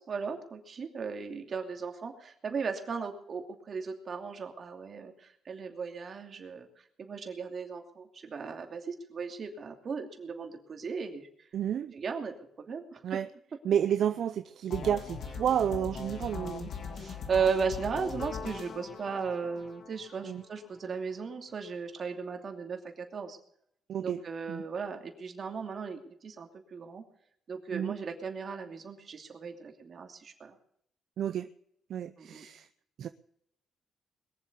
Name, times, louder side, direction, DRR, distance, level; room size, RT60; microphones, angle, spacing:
voice 1, 0.0-6.7 7.0-11.3 11.9-13.0 16.9-23.4 24.0-27.0 27.5-30.5 32.2-32.4, right 5 dB, 45° right, 4 dB, 2.7 m, -36 dB
voice 2, 11.5-11.9 13.0-13.3 13.6-16.7 20.2-20.4 23.9-24.2 24.5-24.6 27.7-27.9 31.2-31.5 31.9-32.6 33.0-33.1, right 9 dB, 65° right, 11 dB, 0.6 m, -30 dB
sound 1, 14.7-20.7, left 5 dB, 60° left, 2.6 m, -40 dB
21.5 x 7.5 x 6.9 m, 0.71 s
cardioid pair, 90°, 0 cm